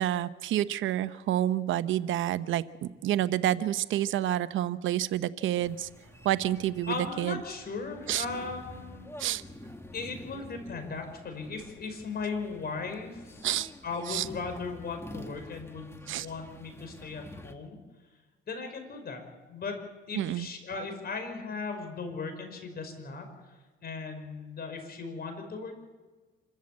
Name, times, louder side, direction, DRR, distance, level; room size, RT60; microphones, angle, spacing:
voice 1, 0.0-2.6 3.0-5.9 6.2-7.4 8.1-8.2 9.2-9.4 13.4-13.7 14.1-14.3 16.1-16.3 20.2-20.5, right 12 dB, 80° right, 14 dB, 0.8 m, -28 dB
sound 1, 5.6-17.5, left 1 dB, 15° left, 1.8 m, -48 dB
voice 2, 6.9-9.1 9.9-13.4 13.8-17.8 18.5-19.2 19.5-23.3 23.8-25.8, left 4 dB, 50° left, 6 dB, 5.3 m, -37 dB
26.5 x 14.0 x 8.6 m, 1.3 s
cardioid pair, 90°, 20 cm